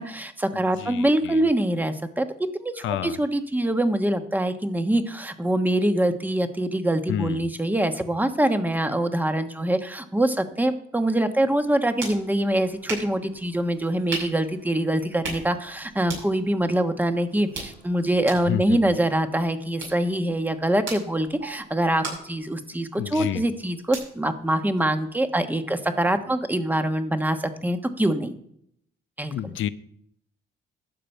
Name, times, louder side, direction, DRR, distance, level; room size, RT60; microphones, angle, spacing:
voice 1, 0.0-2.3 2.5-28.3 29.2-29.5, right 1 dB, 10° right, 7 dB, 1.2 m, -24 dB
voice 2, 0.5-1.5 2.8-3.2 7.1-7.5 18.5-18.9 23.0-23.4 29.3-29.7, left 11 dB, 75° left, 14 dB, 0.7 m, -30 dB
sound 1, 11.6-25.3, right 3 dB, 75° right, 5.9 m, -40 dB
12.5 x 5.1 x 8.2 m, 0.70 s
cardioid pair, 90°, 20 cm